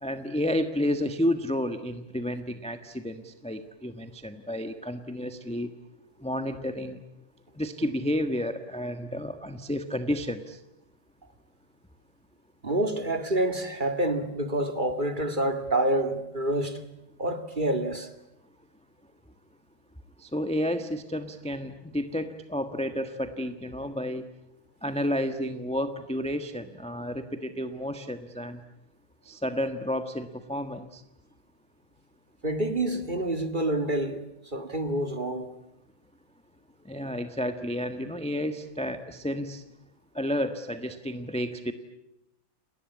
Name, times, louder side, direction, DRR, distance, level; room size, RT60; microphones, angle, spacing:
voice 1, 0.0-5.7 6.2-7.0 7.6-10.6 20.2-24.2 24.8-28.6 29.2-31.0 36.8-39.6 40.1-41.7, left 1 dB, 5° left, 1.1 m, -31 dB
voice 2, 12.6-16.9 17.2-18.1 32.4-34.2 34.5-35.5, right 1 dB, 25° right, 2.2 m, -27 dB
30.0 x 20.0 x 9.7 m
omnidirectional pair, 2.2 m